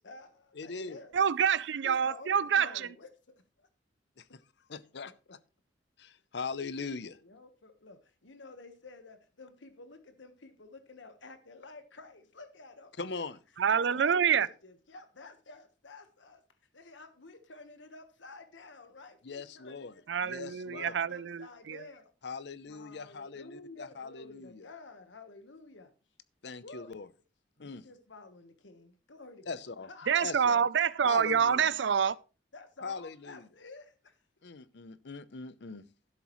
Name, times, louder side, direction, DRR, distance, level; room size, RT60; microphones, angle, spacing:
voice 1, 0.0-1.2 1.8-3.7 5.0-5.3 7.2-12.9 13.7-16.4 16.7-22.1 22.7-25.9 26.6-26.9 27.6-30.1 30.5-30.9 32.5-34.2, left 3 dB, 85° left, 1.3 m, -51 dB
voice 2, 0.6-1.0 4.2-4.3 4.7-5.1 6.0-7.2 13.0-13.4 19.2-19.9 20.2-20.9 22.2-24.7 26.4-27.1 27.6-27.8 29.5-29.9 30.2-30.7 31.0-31.7 32.8-33.5 34.4-35.8, left 4 dB, 65° left, 0.7 m, -40 dB
voice 3, 1.1-2.7 13.6-14.5 20.1-21.8 30.1-32.2, right 7 dB, 70° right, 0.4 m, -27 dB
12.0 x 11.0 x 3.1 m
head